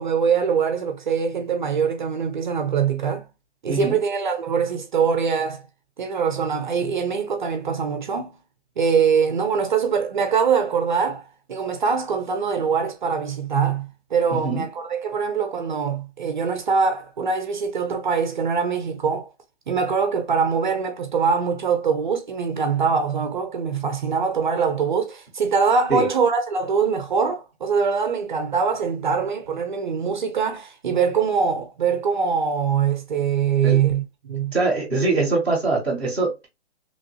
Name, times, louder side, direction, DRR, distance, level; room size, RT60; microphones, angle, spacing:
voice 1, 0.0-3.3 3.6-5.6 6.0-8.3 8.8-19.3 19.7-34.5, right 6 dB, 45° right, 0.6 m, -23 dB
voice 2, 3.7-4.0 14.3-14.7 25.9-26.1 33.6-33.8 34.5-36.5, right 3 dB, 5° left, 0.7 m, -23 dB
3.0 x 2.7 x 2.7 m
hypercardioid pair, 170°, 34 cm